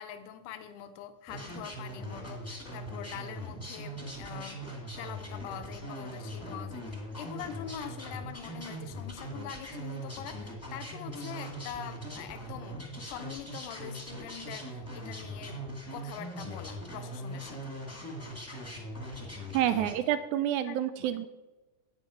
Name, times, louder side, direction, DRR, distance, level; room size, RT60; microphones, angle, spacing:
voice 1, 0.0-4.6 5.0-15.6 15.9-17.7 19.7-20.2 20.6-21.2, left 9 dB, 75° left, 2.3 m, -44 dB
sound 1, 1.3-19.9, equal, 5° left, 1.1 m, -41 dB
voice 2, 19.5-21.3, right 11 dB, 85° right, 1.7 m, -28 dB
9.0 x 8.8 x 6.3 m
omnidirectional pair, 3.9 m